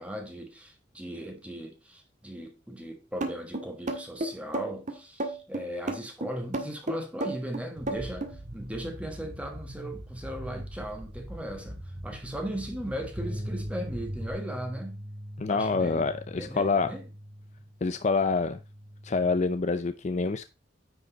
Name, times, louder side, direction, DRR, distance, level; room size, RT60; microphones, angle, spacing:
voice 1, 0.0-15.0 15.5-16.1 16.3-17.1, right 1 dB, 5° right, 1.4 m, -38 dB
sound 1, 3.2-8.4, right 2 dB, 40° right, 1.6 m, -32 dB
sound 2, 7.8-14.3, equal, 75° right, 4.2 m, -42 dB
Bass guitar, 13.2-19.4, equal, 25° right, 3.3 m, -41 dB
voice 2, 15.4-16.9 17.8-18.6 19.0-20.5, left 4 dB, 40° left, 0.5 m, -26 dB
9.8 x 5.2 x 4.0 m
head